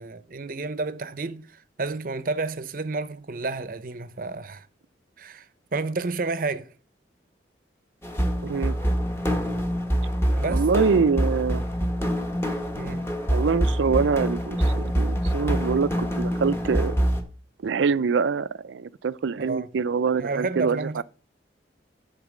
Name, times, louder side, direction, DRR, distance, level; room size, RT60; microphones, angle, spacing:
voice 1, 0.0-1.4 1.8-4.7 5.2-5.5 5.7-6.7 10.3-10.7 12.8-13.0 19.4-19.7 20.2-21.0, right 3 dB, 50° right, 0.7 m, -30 dB
sound 1, 8.0-17.2, equal, 15° left, 1.2 m, -25 dB
voice 2, 8.4-8.8 10.5-11.6 13.3-17.0 17.6-21.0, right 5 dB, 85° right, 0.4 m, -25 dB
11.5 x 4.0 x 7.2 m
head